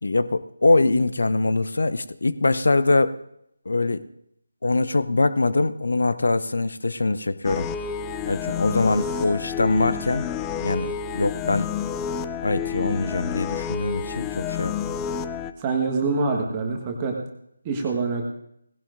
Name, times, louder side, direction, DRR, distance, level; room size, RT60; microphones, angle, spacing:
voice 1, 0.0-3.2 3.7-4.0 4.6-7.7 8.3-10.3 10.6-11.7 12.4-15.0, left 2 dB, 60° left, 14 dB, 0.6 m, -23 dB
sound 1, 7.4-15.5, left 7 dB, 10° left, 0.4 m, -30 dB
voice 2, 15.6-17.2 17.6-18.2, right 4 dB, 20° right, 1 dB, 1.5 m, -25 dB
18.5 x 16.5 x 2.6 m, 0.76 s
figure-of-eight pair, 155°, 0 cm